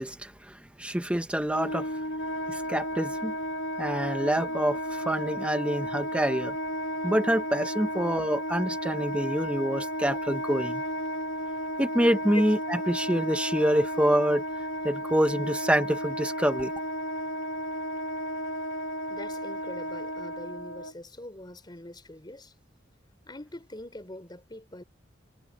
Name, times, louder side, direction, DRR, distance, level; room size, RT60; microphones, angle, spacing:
voice 1, 0.0-1.9 2.5-3.3 3.8-6.6 7.0-10.8 11.8-14.4 14.8-16.7, equal, 5° right, 1.0 m, -26 dB
Wind instrument woodwind instrument, 1.4-20.9, equal, 80° left, 1.6 m, -33 dB
voice 2, 19.1-22.5 23.3-24.8, left 1 dB, 25° left, 3.8 m, -42 dB
head